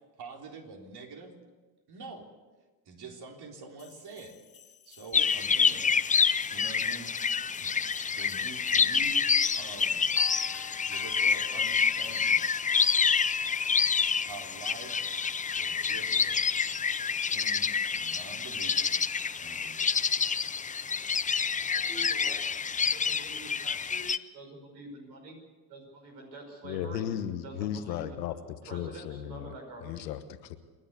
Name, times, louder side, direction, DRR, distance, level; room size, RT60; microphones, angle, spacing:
voice 1, 0.2-1.3 1.9-2.3 2.9-4.4 4.9-5.9 6.5-7.7 8.2-9.3 9.6-10.0 10.9-12.5 14.3-15.1 15.5-16.4 17.1-18.9 19.4-19.9, right 3 dB, 50° right, 2 dB, 3.7 m, -46 dB
sound 1, 3.8-21.5, left 9 dB, 45° left, 2.1 m, -52 dB
sound 2, 5.1-24.2, left 6 dB, 15° left, 0.6 m, -27 dB
voice 2, 21.5-22.4 22.9-25.4 25.7-27.1 27.4-28.1 28.6-30.1, right 2 dB, 80° right, 1 dB, 5.7 m, -46 dB
voice 3, 26.6-28.4 28.7-29.5 29.8-30.6, left 10 dB, 80° left, 10 dB, 1.3 m, -35 dB
28.0 x 11.0 x 8.3 m, 1.3 s
hypercardioid pair, 55°, 49 cm